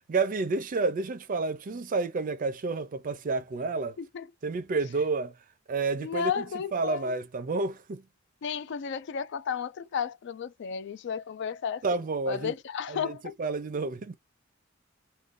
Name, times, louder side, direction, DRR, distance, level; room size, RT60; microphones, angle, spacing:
voice 1, 0.1-4.0 4.4-5.3 5.7-6.5 6.7-8.0 11.8-12.5 12.9-14.2, right 3 dB, 40° right, 0.4 m, -30 dB
voice 2, 4.0-4.3 6.0-7.2 8.4-11.8 12.3-13.3, left 7 dB, 60° left, 0.3 m, -33 dB
2.5 x 2.2 x 3.6 m
head